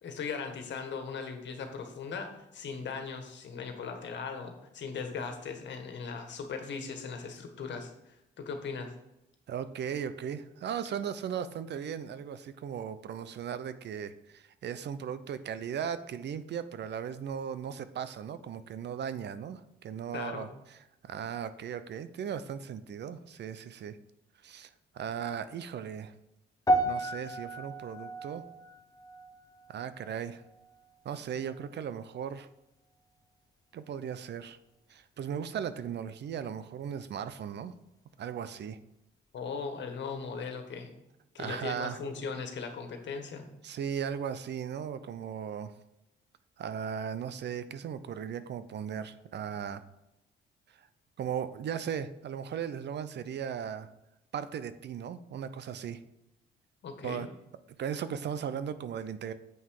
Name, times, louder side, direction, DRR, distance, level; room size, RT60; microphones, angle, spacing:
voice 1, 0.0-8.9 20.1-20.5 39.3-40.9 41.3-43.4 56.8-57.3, left 5 dB, 65° left, 5 dB, 1.7 m, -38 dB
voice 2, 9.5-20.5 21.0-24.0 24.4-26.1 26.8-28.4 29.7-30.4 31.0-32.5 33.7-34.6 34.9-37.7 38.2-38.8 41.4-42.0 43.6-45.7 46.6-49.8 51.2-53.9 54.3-56.0 57.0-57.3 57.8-59.3, right 8 dB, 60° right, 13 dB, 0.7 m, -37 dB
sound 1, 26.7-31.1 31.3-31.7 32.4-32.5, right 1 dB, 20° left, 0.9 m, -33 dB
7.9 x 5.7 x 4.8 m, 0.90 s
cardioid pair, 90°, 20 cm